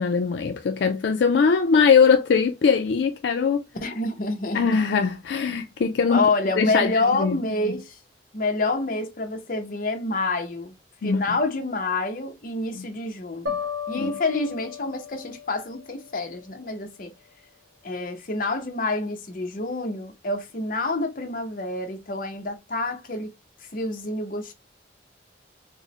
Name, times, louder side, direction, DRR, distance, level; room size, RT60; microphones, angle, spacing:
voice 1, 0.0-3.6 4.5-6.2 6.6-7.4 11.0-11.2 12.7-12.9 13.9-14.2, left 5 dB, 70° left, 0.4 m, -21 dB
voice 2, 3.8-4.8 6.1-8.0 8.3-10.7 11.0-13.6 13.9-17.1 17.8-23.3 23.7-24.5, left 2 dB, 50° left, 0.7 m, -27 dB
sound 1, 13.5-16.6, left 6 dB, 80° right, 1.1 m, -35 dB
4.5 x 2.0 x 2.9 m
head